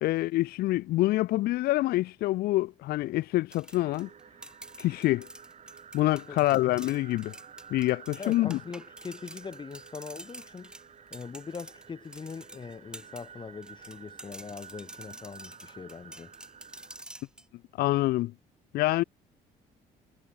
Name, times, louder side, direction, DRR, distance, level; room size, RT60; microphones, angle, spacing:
voice 1, 0.0-4.1 4.8-5.3 5.9-7.3 7.7-8.6 17.8-18.3 18.7-19.0, left 17 dB, 65° left, 0.4 m, -26 dB
sound 1, 3.5-13.3 13.6-17.4, right 1 dB, 5° right, 0.7 m, -48 dB
sound 2, 3.7-17.0, right 7 dB, 40° right, 5.5 m, -51 dB
voice 2, 6.3-6.6 8.2-10.7 11.1-16.3, left 5 dB, 30° left, 1.8 m, -42 dB
cardioid pair, 110°, 17 cm